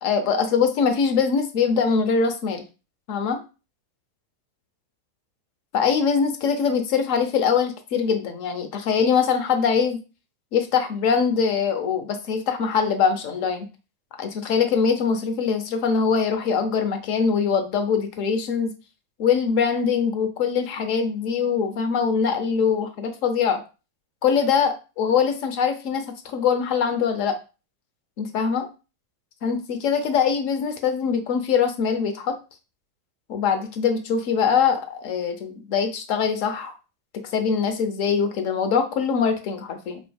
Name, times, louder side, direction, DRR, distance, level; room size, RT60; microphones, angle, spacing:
voice 1, 0.0-2.6 3.1-3.4 5.7-10.0 10.5-13.7 14.2-18.7 19.2-23.6 24.2-27.4 28.2-28.7 29.4-32.4 33.3-36.7 37.3-40.0, left 6 dB, 55° left, 7 dB, 0.6 m, -23 dB
3.2 x 2.1 x 2.2 m, 0.31 s
hypercardioid pair, 95°, 0 cm